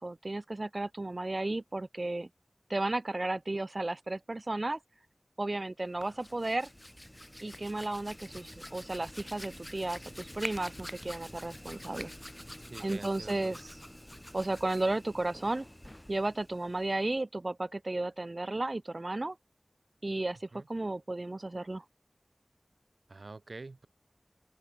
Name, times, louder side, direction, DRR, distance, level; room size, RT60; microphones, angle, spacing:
voice 1, 0.0-2.3 2.7-4.8 5.4-6.7 7.4-12.1 12.8-13.6 14.3-15.6 16.1-19.4 20.0-21.8, right 2 dB, 55° right, 1.6 m, -34 dB
Hands, 5.8-17.2, left 1 dB, 15° left, 0.9 m, -47 dB
voice 2, 12.6-13.6 20.5-20.7 23.1-23.9, right 3 dB, 85° right, 2.1 m, -47 dB
open air
wide cardioid pair, 50°, 0 cm